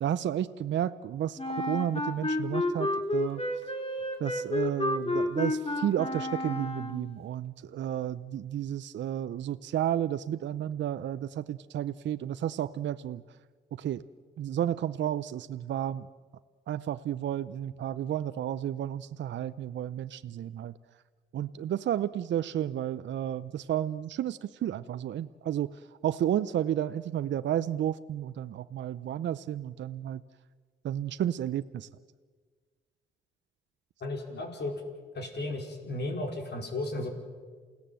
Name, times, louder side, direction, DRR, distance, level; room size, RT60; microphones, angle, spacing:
voice 1, 0.0-3.4 4.2-13.2 13.7-14.0 14.4-16.1 16.7-20.7 21.3-25.8 26.0-30.2 30.8-31.9, right 11 dB, 65° right, 12 dB, 0.7 m, -32 dB
Wind instrument woodwind instrument, 1.4-7.1, left 1 dB, 30° left, 3.4 m, -31 dB
voice 2, 34.0-34.7 35.1-37.1, left 2 dB, 55° left, 2 dB, 4.9 m, -34 dB
28.5 x 17.5 x 7.7 m, 1.5 s
supercardioid pair, 55°, 20 cm